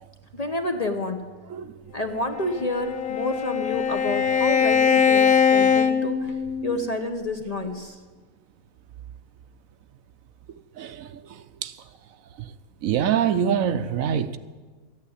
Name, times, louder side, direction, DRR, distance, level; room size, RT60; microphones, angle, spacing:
voice 1, 0.3-1.2 1.9-6.2 6.6-8.0, left 1 dB, 35° left, 0.8 m, -29 dB
Bowed string instrument, 2.4-6.8, left 7 dB, 75° left, 1.3 m, -21 dB
voice 2, 5.1-5.7 10.8-11.2 11.6-11.7 12.8-14.4, right 8 dB, 70° right, 1.0 m, -25 dB
14.0 x 8.9 x 8.5 m
omnidirectional pair, 1.5 m